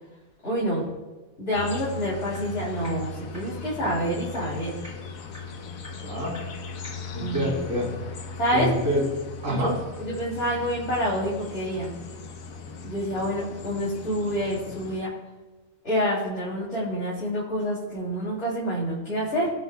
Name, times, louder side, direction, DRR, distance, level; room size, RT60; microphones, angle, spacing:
voice 1, 0.4-0.9 1.4-4.8 7.2-7.5 8.4-8.7 9.5-9.7 10.0-11.9 12.8-15.1 15.8-19.5, equal, 55° left, -7 dB, 3.2 m, -27 dB
sound 1, 1.5-15.0, left 4 dB, 75° left, 1.3 m, -38 dB
sound 2, 2.3-2.4 2.8-2.9 3.3-3.4 3.8-3.9 4.3-4.4 4.8-4.9 5.3-5.4 5.8-5.9 6.3-6.4 6.8-6.9 7.3-7.4, right 1 dB, 55° right, 4.1 m, -43 dB
voice 2, 6.0-6.3 7.1-8.0 8.5-9.1 9.4-9.7, equal, 70° right, -4 dB, 3.5 m, -26 dB
21.5 x 8.1 x 2.2 m, 1.2 s
omnidirectional pair, 1.4 m